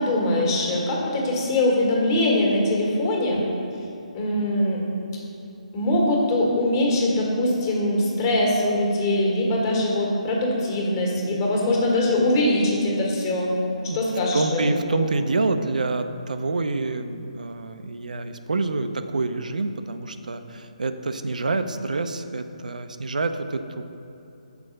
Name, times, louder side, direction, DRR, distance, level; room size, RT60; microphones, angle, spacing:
voice 1, 0.0-3.4 4.1-4.8 5.7-13.5 13.9-15.1, left 1 dB, 30° left, -2 dB, 1.5 m, -22 dB
voice 2, 14.3-23.8, right 3 dB, 90° right, 8 dB, 0.5 m, -27 dB
5.9 x 4.9 x 6.4 m, 2.8 s
hypercardioid pair, 160°, 4 cm